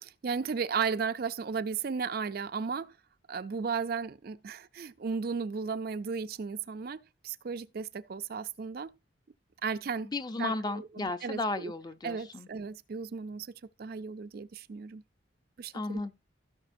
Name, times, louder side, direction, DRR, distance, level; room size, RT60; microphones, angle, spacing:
voice 1, 0.0-2.9 3.3-8.9 9.6-10.1 10.4-11.7 12.0-13.5 13.8-15.0 15.6-16.0, right 5 dB, 50° right, 0.4 m, -35 dB
voice 2, 10.0-12.5 15.7-16.1, left 2 dB, 20° left, 0.5 m, -34 dB
16.0 x 5.9 x 2.6 m
head